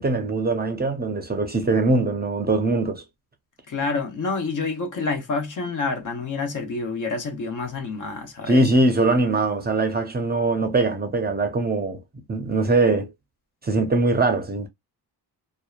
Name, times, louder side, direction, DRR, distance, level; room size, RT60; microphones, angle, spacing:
voice 1, 0.0-3.0 8.5-12.0 12.3-13.1 13.6-14.7, right 2 dB, 25° right, 0.6 m, -22 dB
voice 2, 3.7-8.7, left 4 dB, 50° left, 0.9 m, -28 dB
2.8 x 2.1 x 2.3 m
cardioid pair, 85°, 39 cm